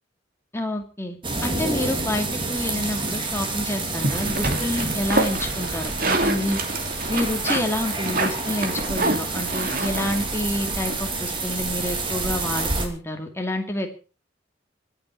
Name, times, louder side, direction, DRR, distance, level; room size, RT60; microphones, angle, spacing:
voice 1, 0.5-1.2 1.4-6.6 7.1-13.9, left 1 dB, 15° left, 4 dB, 2.4 m, -28 dB
sound 1, 1.2-12.9, right 3 dB, 30° right, 2.8 m, -28 dB
sound 2, 4.0-12.0, right 2 dB, 50° right, 2.5 m, -28 dB
26.0 x 8.8 x 4.6 m, 0.36 s
head